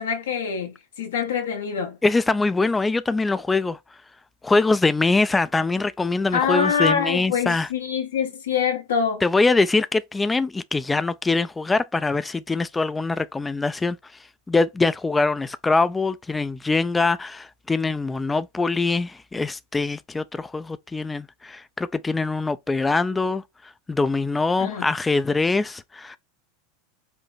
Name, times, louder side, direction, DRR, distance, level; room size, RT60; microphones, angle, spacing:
voice 1, 0.0-2.0 6.3-9.2 24.6-24.9, left 6 dB, 85° left, 1.2 m, -25 dB
voice 2, 2.0-3.8 4.4-7.7 9.2-14.0 14.5-26.2, left 3 dB, 15° left, 0.3 m, -23 dB
5.1 x 2.1 x 4.0 m
hypercardioid pair, 100°, 0 cm